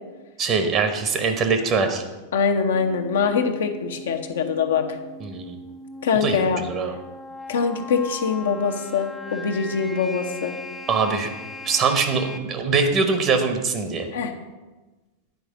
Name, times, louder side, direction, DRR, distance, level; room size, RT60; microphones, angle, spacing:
voice 1, 0.4-2.0 5.2-5.6 6.2-6.9 10.9-11.3 11.6-14.1, right 5 dB, 30° right, 6 dB, 0.9 m, -22 dB
voice 2, 2.3-5.0 6.0-6.6 7.5-10.6 14.1-14.3, left 5 dB, 60° left, 5 dB, 0.9 m, -23 dB
sound 1, 2.7-12.4, left 1 dB, ahead, 0.7 m, -39 dB
9.4 x 4.8 x 6.4 m, 1.2 s
figure-of-eight pair, 90°, 0 cm